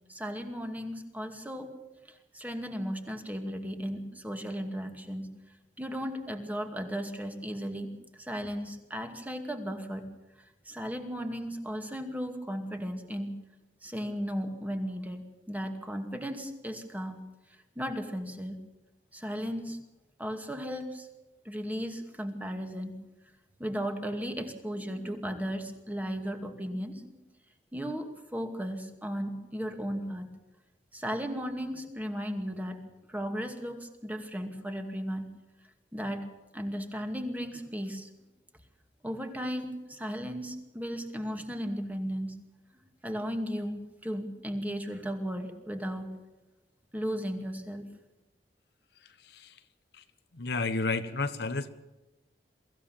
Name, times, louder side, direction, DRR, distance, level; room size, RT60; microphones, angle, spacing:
voice 1, 0.1-1.7 2.1-5.3 5.8-10.1 10.7-13.3 13.8-17.2 17.8-18.6 19.1-19.8 20.2-21.1 21.4-23.0 23.6-27.1 27.7-30.3 30.9-32.8 33.1-35.3 35.9-36.3 36.5-38.1 39.0-42.3 43.0-46.1 46.9-47.9, equal, 10° right, 5 dB, 2.3 m, -35 dB
voice 2, 49.2-49.5 50.3-51.7, left 3 dB, 65° left, 10 dB, 1.3 m, -31 dB
23.5 x 15.5 x 7.3 m, 1.0 s
head